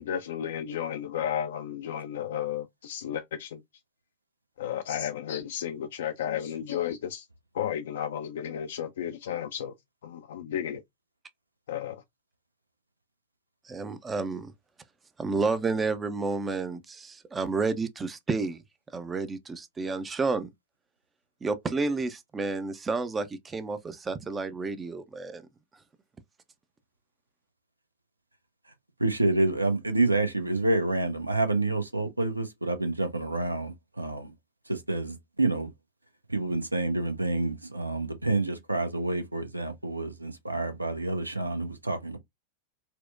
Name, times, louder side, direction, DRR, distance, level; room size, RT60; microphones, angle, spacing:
voice 1, 0.0-3.6 4.6-7.3 7.5-9.7 10.0-10.8 11.7-12.0, left 9 dB, 60° left, 0.3 m, -33 dB
voice 2, 13.7-14.5 15.2-18.6 18.9-20.5 21.4-25.4, right 4 dB, 15° right, 0.4 m, -30 dB
voice 3, 29.0-34.3 34.7-35.7 36.3-42.2, right 2 dB, 85° right, 0.6 m, -28 dB
4.3 x 2.1 x 2.3 m
figure-of-eight pair, 90°, 0 cm